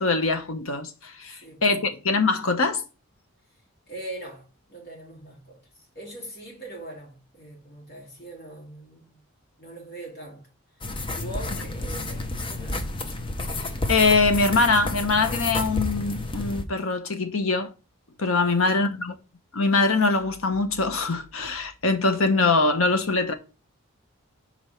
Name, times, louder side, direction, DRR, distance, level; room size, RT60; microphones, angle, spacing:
voice 1, 0.0-2.8 13.9-17.7 18.2-19.1 19.5-23.3, left 3 dB, 65° left, 1.0 m, -23 dB
voice 2, 1.4-1.8 3.9-5.6 5.9-9.2 9.6-10.5 11.1-12.9 18.4-18.9, right 1 dB, 45° left, 2.6 m, -41 dB
sound 1, 10.8-16.6, left 2 dB, 20° left, 0.6 m, -30 dB
5.2 x 4.4 x 5.7 m
head